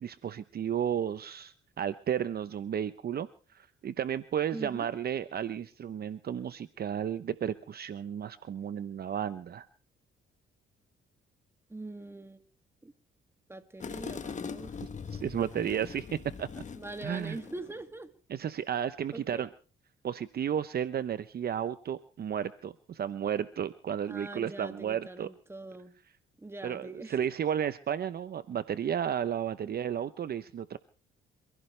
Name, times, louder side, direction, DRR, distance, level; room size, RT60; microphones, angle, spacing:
voice 1, 0.0-9.7 15.1-16.1 16.4-16.5 17.0-17.4 18.3-19.5 20.0-25.3 26.6-30.8, right 9 dB, 50° right, 0.8 m, -33 dB
voice 2, 4.5-4.9 11.7-12.4 12.8-12.9 13.5-14.8 16.8-18.1 19.1-19.5 24.1-25.9 26.4-27.2, right 2 dB, 10° right, 2.2 m, -43 dB
sound 1, 13.8-17.9, left 6 dB, 40° left, 1.5 m, -41 dB
27.0 x 16.0 x 3.3 m
cardioid pair, 90°, 20 cm